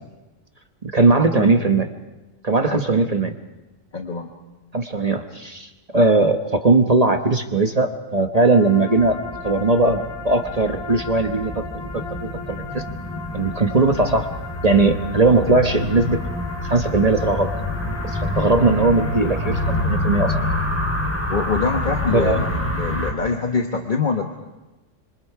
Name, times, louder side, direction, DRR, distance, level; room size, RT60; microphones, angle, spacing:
voice 1, 0.8-1.9 2.4-3.3 4.7-9.2 9.4-11.6 12.2-12.8 13.3-14.3 14.6-16.2 16.7-17.5 18.0-20.3 22.1-22.4, right 3 dB, 30° right, 6 dB, 1.0 m, -19 dB
voice 2, 3.9-4.4 21.3-24.3, left 5 dB, 40° left, 3 dB, 1.3 m, -24 dB
sound 1, 8.3-19.8, left 4 dB, 85° left, 2.4 m, -37 dB
sound 2, 9.0-23.1, left 1 dB, 10° left, 3.9 m, -27 dB
26.5 x 26.0 x 4.7 m, 1.1 s
omnidirectional pair, 1.4 m